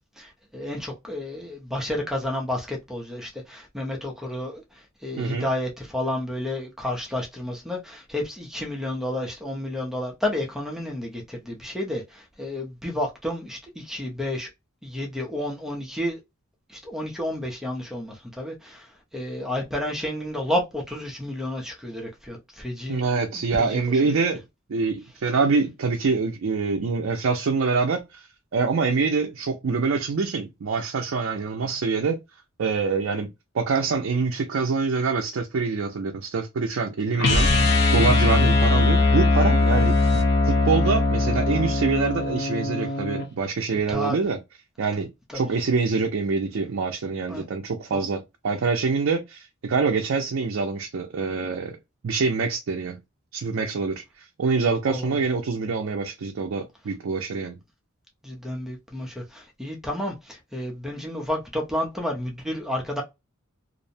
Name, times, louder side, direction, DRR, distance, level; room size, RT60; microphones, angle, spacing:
voice 1, 0.2-14.5 14.8-16.2 16.7-18.9 19.1-23.0 23.3-24.2 43.9-44.2 45.3-45.5 47.3-47.5 47.9-48.1 54.9-55.2 58.2-63.0, left 1 dB, ahead, 0.5 m, -31 dB
voice 2, 22.9-24.4 24.7-28.3 28.5-32.2 32.6-33.3 33.5-40.0 40.4-44.4 44.8-51.7 52.0-53.0 53.3-54.0 54.4-57.6, right 4 dB, 70° right, 0.4 m, -25 dB
sound 1, 37.2-43.3, left 2 dB, 55° left, 0.5 m, -20 dB
2.5 x 2.0 x 2.6 m
head